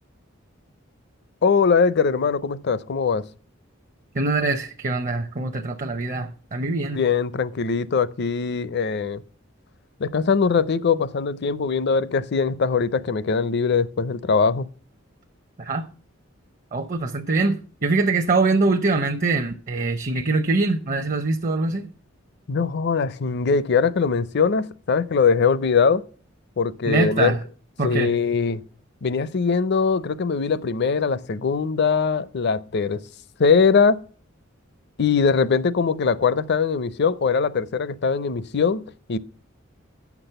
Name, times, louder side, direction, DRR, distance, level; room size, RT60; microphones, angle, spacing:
voice 1, 1.4-3.2 6.9-9.2 10.0-14.7 22.5-26.0 26.6-27.3 27.8-28.6 29.0-33.0 33.4-34.0 35.0-39.2, left 5 dB, 55° left, 0.5 m, -21 dB
voice 2, 4.1-7.0 15.6-15.9 16.7-21.9 26.9-27.4 27.8-28.1, right 3 dB, 40° right, 0.7 m, -23 dB
8.5 x 6.0 x 6.6 m
head